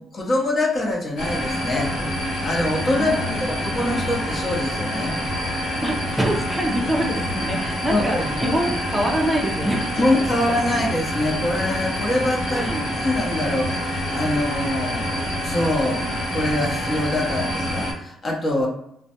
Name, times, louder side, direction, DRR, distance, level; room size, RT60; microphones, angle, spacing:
voice 1, 0.0-1.9 2.4-3.1 3.5-5.2 7.9-8.4 10.0-16.0 16.3-18.7, left 1 dB, 40° left, -1 dB, 0.7 m, -24 dB
sound 1, 1.2-17.9, equal, 90° left, 0.9 m, -27 dB
voice 2, 3.0-3.5 5.8-10.1 12.5-12.9, right 1 dB, 10° right, 0 dB, 0.5 m, -25 dB
2.3 x 2.1 x 2.8 m, 0.76 s
cardioid pair, 90°, 0 cm